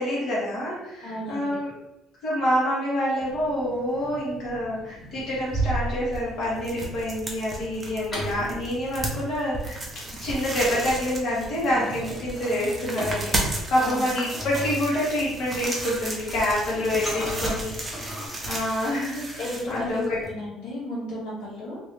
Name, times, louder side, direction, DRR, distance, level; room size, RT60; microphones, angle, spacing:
voice 1, 0.0-1.7 2.2-9.8 10.2-17.7 18.5-20.2, left 1 dB, 55° left, -7 dB, 1.5 m, -27 dB
voice 2, 1.0-1.5 7.9-8.5 13.8-14.0 16.8-17.5 19.4-21.8, equal, 80° left, -7 dB, 1.4 m, -34 dB
sound 1, 3.2-5.3 5.8-18.3, equal, 20° left, 1.2 m, -40 dB
sound 2, 5.2-20.3, right 2 dB, 15° right, 0.6 m, -33 dB
3.0 x 2.6 x 3.3 m, 0.88 s
cardioid pair, 135°, 0 cm